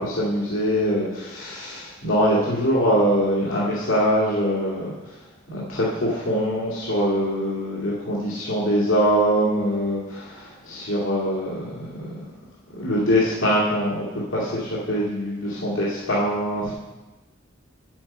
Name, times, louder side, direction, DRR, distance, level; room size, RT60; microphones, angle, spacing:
voice 1, 0.0-4.9 5.5-12.2 12.8-16.7, equal, 85° left, -8 dB, 2.1 m, -23 dB
8.8 x 7.7 x 4.4 m, 1.1 s
head